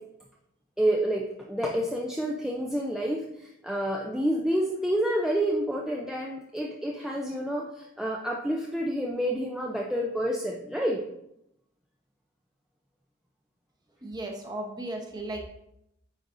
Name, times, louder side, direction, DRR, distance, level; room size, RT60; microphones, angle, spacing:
voice 1, 0.8-11.0, right 1 dB, ahead, -2 dB, 0.4 m, -29 dB
voice 2, 14.0-15.4, right 1 dB, 20° right, 1 dB, 0.8 m, -35 dB
9.4 x 4.0 x 2.5 m, 0.82 s
head